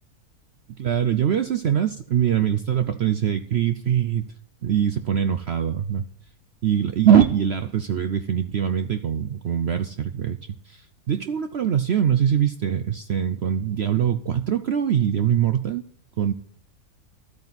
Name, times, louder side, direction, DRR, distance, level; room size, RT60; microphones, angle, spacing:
voice 1, 0.8-4.3 4.6-6.1 6.6-10.4 10.6-15.8 16.2-16.3, right 9 dB, 65° right, 10 dB, 0.6 m, -22 dB
12.5 x 8.7 x 4.0 m, 0.64 s
omnidirectional pair, 1.6 m